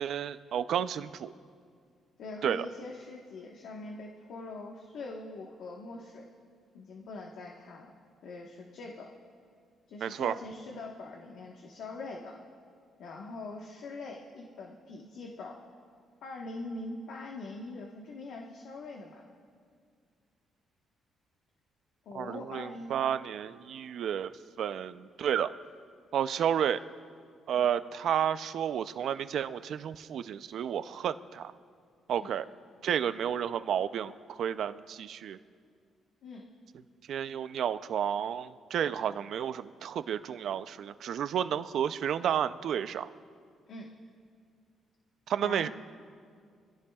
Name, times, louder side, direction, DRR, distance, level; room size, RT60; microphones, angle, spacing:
voice 1, 0.0-1.3 2.4-2.7 10.0-10.3 22.1-24.3 24.6-25.5 26.1-26.8 27.5-31.5 32.1-32.5 32.8-35.4 37.1-43.1 45.3-45.7, right 9 dB, 70° right, 12 dB, 0.5 m, -31 dB
voice 2, 2.2-6.3 6.7-7.9 8.2-9.1 9.9-12.4 13.0-15.6 16.2-19.3 22.0-22.9 27.5-27.7 32.2-32.3 36.2-36.4 43.7-43.9 45.4-45.7, left 2 dB, 75° left, 0 dB, 1.3 m, -43 dB
25.0 x 16.0 x 2.4 m, 2.1 s
cardioid pair, 90°, 0 cm